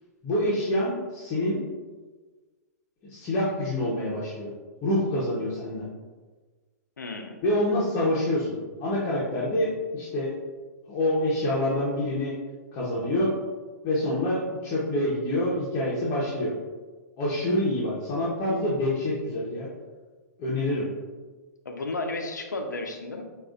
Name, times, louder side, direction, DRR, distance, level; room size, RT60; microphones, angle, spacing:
voice 1, 0.2-1.6 3.1-4.5 4.8-5.8 7.4-10.3 10.9-12.3 12.7-13.3 13.8-16.5 17.2-19.7 20.4-20.8, left 1 dB, 35° left, -6 dB, 0.9 m, -26 dB
voice 2, 7.0-7.4 21.6-23.2, left 2 dB, 85° left, 4 dB, 0.6 m, -33 dB
6.0 x 2.5 x 2.5 m, 1.3 s
figure-of-eight pair, 115°, 9 cm